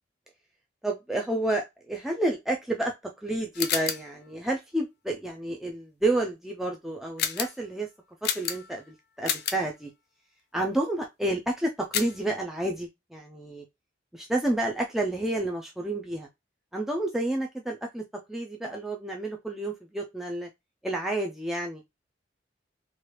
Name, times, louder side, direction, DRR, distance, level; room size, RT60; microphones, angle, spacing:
voice 1, 0.8-7.9 8.2-9.9 10.5-13.6 14.1-16.3 16.7-18.0 18.3-20.5 20.8-21.8, right 1 dB, ahead, 0 dB, 0.3 m, -30 dB
sound 1, 3.5-4.1 7.2-7.6 8.2-8.8 9.2-9.7 11.9-12.3, left 9 dB, 60° left, 0.5 m, -30 dB
3.1 x 2.4 x 3.0 m, 0.20 s
head